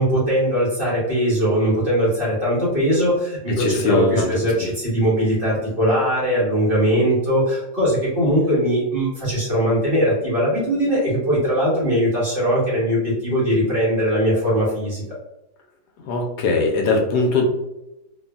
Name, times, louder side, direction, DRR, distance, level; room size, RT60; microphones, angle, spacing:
voice 1, 0.0-15.0, equal, 35° right, -8 dB, 1.2 m, -20 dB
voice 2, 3.6-4.3 4.6-4.7 16.0-17.4, left 3 dB, 75° left, 1 dB, 1.1 m, -20 dB
2.9 x 2.5 x 2.3 m, 0.93 s
omnidirectional pair, 1.8 m